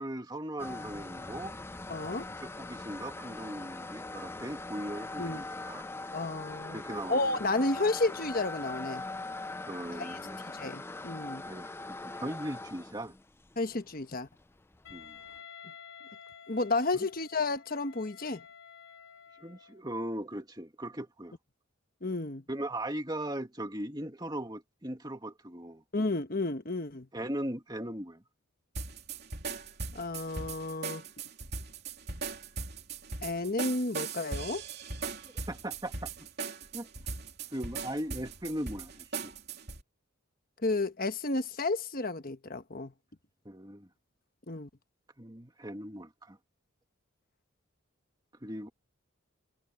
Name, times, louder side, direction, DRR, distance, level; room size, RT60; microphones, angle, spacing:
voice 1, 0.0-1.5 2.2-5.9 6.7-7.4 9.7-10.4 11.5-11.7 12.0-13.1 14.9-15.2 16.9-17.1 19.4-21.4 22.5-25.8 27.1-28.2 35.0-36.1 36.7-36.9 37.5-39.3 43.4-43.9 45.2-46.4 48.4-48.7, right 1 dB, 20° right, 2.4 m, -39 dB
sound 1, 0.6-15.4, left 2 dB, 10° left, 0.4 m, -41 dB
voice 2, 1.9-2.3 5.2-5.4 6.1-6.8 7.1-9.0 10.0-10.2 10.5-11.4 13.6-14.3 16.5-18.4 22.0-22.4 25.9-27.1 29.9-31.0 33.2-34.6 40.6-42.9 44.5-44.7, left 2 dB, 45° left, 1.3 m, -32 dB
Wind instrument woodwind instrument, 14.8-19.8, left 8 dB, 70° left, 7.2 m, -51 dB
sound 2, 28.7-39.8, right 4 dB, 50° right, 3.3 m, -39 dB
head